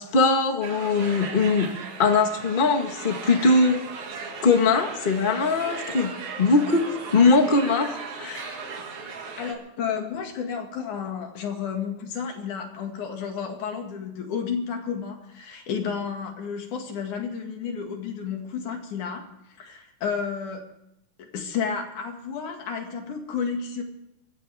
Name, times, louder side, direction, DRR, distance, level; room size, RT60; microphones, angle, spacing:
voice 1, 0.0-3.9 4.4-6.1 6.4-6.9 7.1-8.5, left 3 dB, 40° left, 5 dB, 0.7 m, -21 dB
sound 1, 0.6-9.5, right 4 dB, 70° right, 3.3 m, -37 dB
voice 2, 9.4-20.6 21.2-23.8, left 6 dB, 75° left, 4 dB, 3.4 m, -31 dB
24.0 x 15.0 x 3.5 m, 0.83 s
omnidirectional pair, 3.6 m